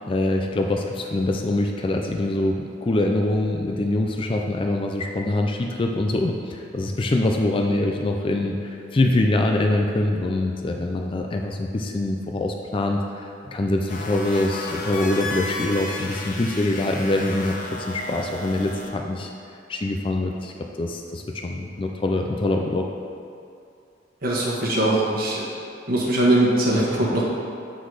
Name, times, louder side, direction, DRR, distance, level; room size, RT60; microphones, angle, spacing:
voice 1, 0.0-17.6 17.9-19.3 19.7-20.5 20.8-22.9, left 2 dB, 30° left, 2 dB, 0.4 m, -24 dB
sound 1, 13.9-18.9, left 2 dB, 45° left, 0.8 m, -33 dB
voice 2, 24.2-25.5 25.9-27.2, right 1 dB, 50° right, -5 dB, 1.4 m, -21 dB
8.2 x 4.0 x 4.8 m, 2.5 s
head